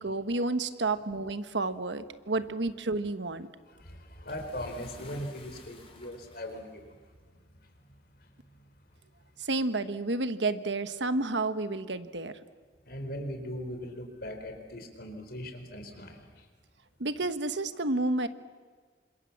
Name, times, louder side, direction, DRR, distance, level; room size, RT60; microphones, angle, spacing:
voice 1, 0.0-3.5 9.4-12.3 17.0-18.3, right 2 dB, 85° right, 11 dB, 1.3 m, -30 dB
voice 2, 3.8-6.8 12.9-16.2, equal, 60° left, 5 dB, 4.4 m, -39 dB
Bathtub (filling or washing) / Splash splatter, 4.3-6.9 7.8-7.9 8.9-9.0, left 4 dB, 35° left, 4.6 m, -55 dB
28.5 x 26.0 x 7.3 m, 1.6 s
head